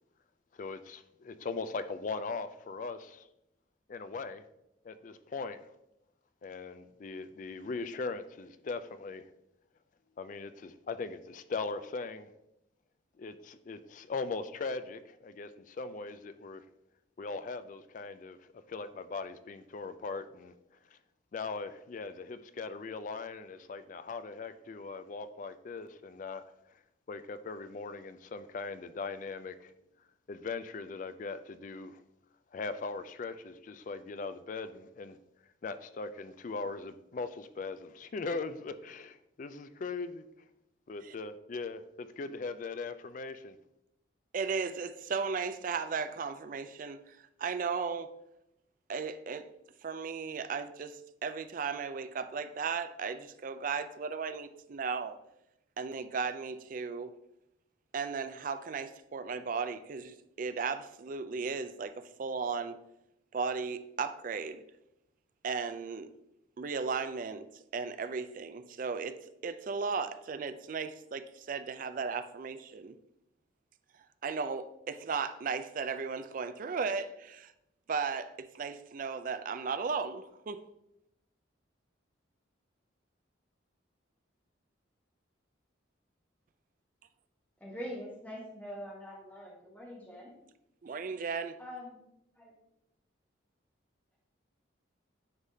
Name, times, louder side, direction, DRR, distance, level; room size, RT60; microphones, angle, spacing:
voice 1, 0.5-3.3 3.9-4.5 4.8-5.7 6.4-9.2 10.2-12.3 13.2-16.6 17.2-18.4 18.7-20.5 20.9-21.0 21.3-26.4 27.1-29.7 30.3-32.0 32.5-35.2 35.6-40.2 40.9-43.6, left 4 dB, 40° left, 0.3 m, -40 dB
voice 2, 44.3-48.1 48.9-49.5 49.8-55.2 55.8-57.1 57.9-62.8 63.3-64.6 65.4-66.1 66.6-69.2 69.4-73.0 74.2-77.5 77.9-80.6 90.8-91.6, right 5 dB, 45° right, 0.3 m, -36 dB
voice 3, 87.6-90.3 91.6-92.0 92.4-92.5, equal, 10° left, 1.1 m, -43 dB
9.7 x 3.5 x 2.7 m
head